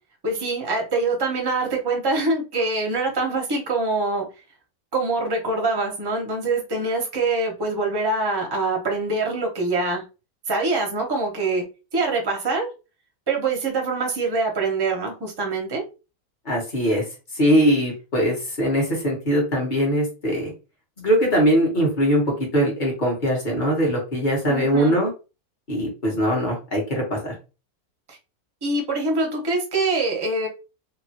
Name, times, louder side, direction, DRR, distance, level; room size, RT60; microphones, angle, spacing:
voice 1, 0.2-4.3 4.9-10.0 10.5-11.6 11.9-12.7 13.3-15.8 24.5-24.9 28.1-28.2 28.6-30.5, right 3 dB, 25° right, 0.6 m, -24 dB
voice 2, 16.4-17.0 17.3-20.5 21.0-22.2 22.5-25.1 25.7-27.3, equal, 35° left, 1.1 m, -21 dB
2.9 x 2.5 x 2.8 m
omnidirectional pair, 1.6 m